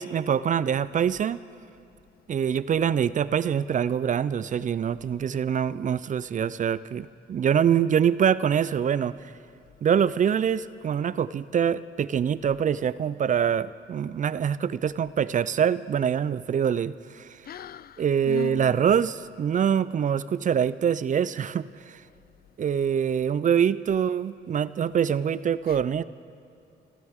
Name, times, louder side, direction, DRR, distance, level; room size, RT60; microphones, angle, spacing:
voice 1, 0.0-1.4 2.3-9.1 9.8-17.3 18.0-22.0 22.6-26.0, right 8 dB, 40° right, 0.4 m, -24 dB
voice 2, 17.5-18.8 25.7-25.8, left 12 dB, 50° left, 0.4 m, -38 dB
27.0 x 13.0 x 3.6 m
cardioid pair, 90°, 20 cm